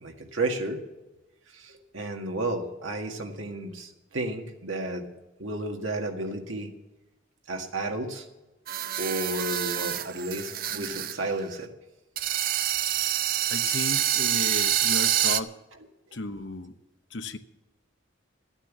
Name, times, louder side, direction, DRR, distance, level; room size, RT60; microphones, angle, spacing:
voice 1, 0.0-0.8 1.6-5.0 5.4-6.7 7.5-8.2 9.0-11.7, right 2 dB, 85° right, 3 dB, 1.8 m, -32 dB
sound 1, 8.7-11.2 11.4-11.5 12.2-15.4, right 11 dB, 45° right, 0.5 m, -27 dB
voice 2, 13.5-15.5 16.1-16.7 17.1-17.4, left 2 dB, 65° left, 9 dB, 0.9 m, -34 dB
13.5 x 9.0 x 7.4 m, 1.0 s
head